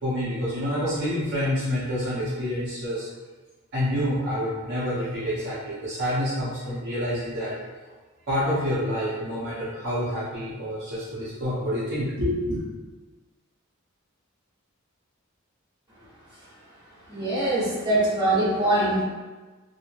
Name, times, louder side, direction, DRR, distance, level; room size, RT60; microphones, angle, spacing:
voice 1, 0.0-3.1 3.7-7.5 8.3-12.6, equal, 55° right, -10 dB, 0.7 m, -27 dB
voice 2, 17.1-19.0, right 1 dB, 20° right, -10 dB, 1.2 m, -23 dB
3.0 x 2.1 x 2.4 m, 1.3 s
head